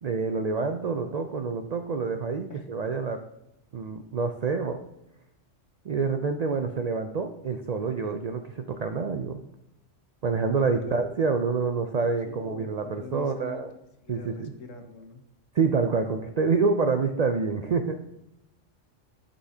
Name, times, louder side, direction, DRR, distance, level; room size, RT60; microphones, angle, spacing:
voice 1, 0.0-3.2 3.7-4.8 5.8-9.5 10.2-13.7 14.1-14.5 15.5-18.0, right 4 dB, 80° right, 6 dB, 0.3 m, -27 dB
voice 2, 10.6-11.1 12.2-13.6 14.0-15.2, left 5 dB, 70° left, 5 dB, 1.3 m, -43 dB
11.5 x 5.3 x 2.8 m, 0.88 s
omnidirectional pair, 1.3 m